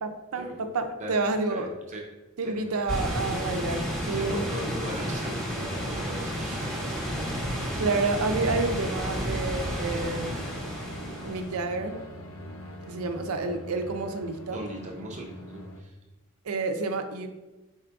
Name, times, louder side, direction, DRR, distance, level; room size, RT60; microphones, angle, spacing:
voice 1, 0.0-1.7 2.4-4.5 7.8-10.4 11.2-12.0 12.9-14.6 16.4-17.3, right 3 dB, 75° right, 6 dB, 0.5 m, -29 dB
voice 2, 1.5-2.1 2.4-2.7 4.1-7.2 14.5-16.0, right 1 dB, 35° right, 0 dB, 0.6 m, -39 dB
sound 1, 2.9-11.5, equal, 5° left, 1.0 m, -31 dB
sound 2, 4.2-15.8, left 1 dB, 75° left, 0.6 m, -43 dB
4.2 x 2.4 x 4.6 m, 1.1 s
head